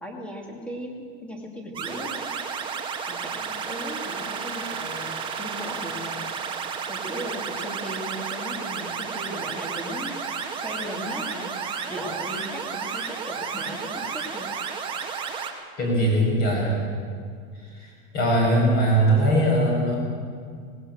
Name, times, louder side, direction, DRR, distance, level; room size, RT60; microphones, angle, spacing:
voice 1, 0.0-2.3 3.1-6.2 6.9-14.6, equal, 5° left, 1 dB, 2.3 m, -37 dB
sound 1, 1.7-15.5, right 6 dB, 15° right, 1.6 m, -32 dB
voice 2, 15.8-16.8 17.7-20.0, right 1 dB, 30° left, -1 dB, 7.1 m, -21 dB
19.0 x 19.0 x 7.8 m, 2.1 s
supercardioid pair, 180°, 30 cm